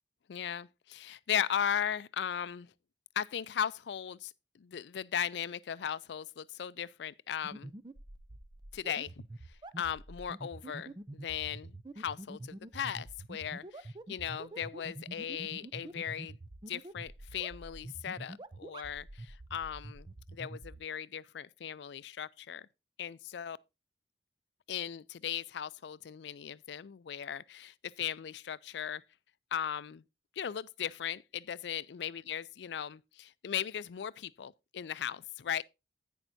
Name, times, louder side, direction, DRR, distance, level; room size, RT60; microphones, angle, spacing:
voice 1, 0.3-2.7 3.2-7.7 8.7-9.1 9.8-16.4 16.7-20.1 20.3-22.7 23.0-23.6 24.7-29.0 29.5-30.0 30.4-35.6, left 9 dB, 80° left, 0.4 m, -37 dB
sound 1, 7.4-20.8, right 2 dB, 25° right, 0.5 m, -46 dB
10.5 x 9.0 x 2.6 m
head